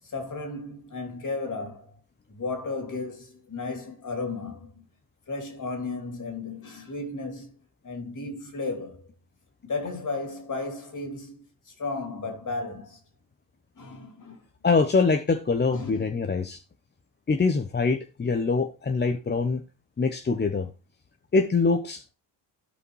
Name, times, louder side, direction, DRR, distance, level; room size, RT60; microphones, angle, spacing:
voice 1, 0.0-2.0 2.3-4.9 5.3-7.5 7.8-9.0 9.6-13.0 13.8-14.4 15.7-16.3, left 3 dB, 45° left, 3.0 m, -34 dB
voice 2, 14.6-16.6 17.3-19.6 20.0-20.7 21.3-22.1, left 4 dB, 25° left, 0.8 m, -24 dB
14.5 x 4.9 x 3.2 m
supercardioid pair, 75°, 44 cm